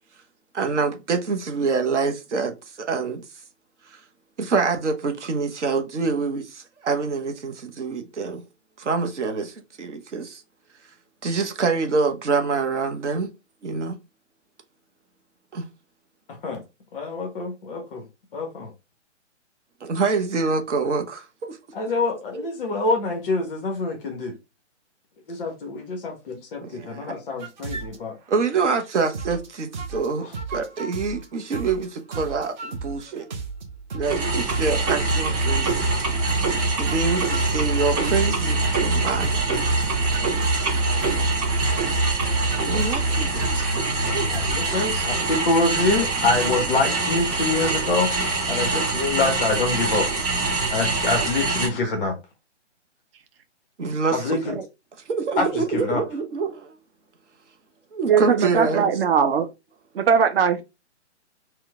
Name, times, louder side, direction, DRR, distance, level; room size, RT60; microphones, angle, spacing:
voice 1, 0.5-3.2 3.9-4.0 4.4-8.4 8.8-10.4 11.2-13.3 13.6-14.0 15.5-15.7 19.8-21.9 22.3-22.5 26.6-27.2 28.3-33.3 33.9-35.9 36.8-39.4 40.6-40.7 42.7-43.7 44.1-44.3 44.9-45.0 53.8-54.4 55.1-56.7 57.9-58.9, right 4 dB, 75° right, 0.9 m, -26 dB
voice 2, 16.9-18.0 18.3-18.7 21.7-24.3 25.3-28.1 41.2-41.3 43.3-43.4 44.3-48.1 48.5-50.1 50.7-52.1 54.1-54.6 55.4-56.0, left 3 dB, 5° left, 0.4 m, -25 dB
sound 1, 27.4-28.0 28.5-29.5 29.7-30.1 30.3-31.3 31.5-31.9 32.1-34.2 34.5-39.0 39.2-41.3 41.6-43.7 44.3-44.9, right 4 dB, 40° right, 1.1 m, -34 dB
sound 2, 34.0-51.7, right 3 dB, 20° right, 1.9 m, -24 dB
voice 3, 58.1-59.5 59.9-60.6, right 7 dB, 55° right, 0.6 m, -20 dB
4.4 x 2.3 x 3.5 m
hypercardioid pair, 145°, 36 cm